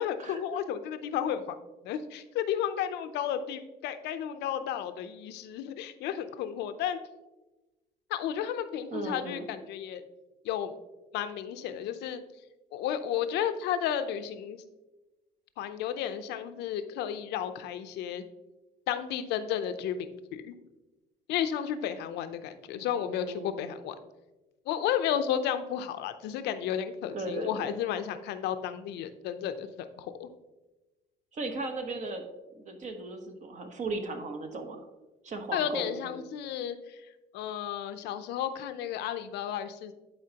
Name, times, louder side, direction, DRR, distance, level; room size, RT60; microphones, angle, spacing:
voice 1, 0.0-1.6 1.8-7.0 8.1-10.0 10.4-10.7 11.1-12.2 12.7-14.6 15.6-18.2 18.9-20.5 21.3-23.9 24.7-30.3 35.5-36.8 37.3-39.9, left 9 dB, 85° left, 10 dB, 0.6 m, -33 dB
voice 2, 8.9-9.5 22.7-23.7 27.1-27.7 31.3-32.2 32.5-34.9 35.2-36.1, right 2 dB, 45° right, 6 dB, 1.1 m, -37 dB
11.0 x 4.4 x 2.9 m, 1.1 s
cardioid pair, 110°, 17 cm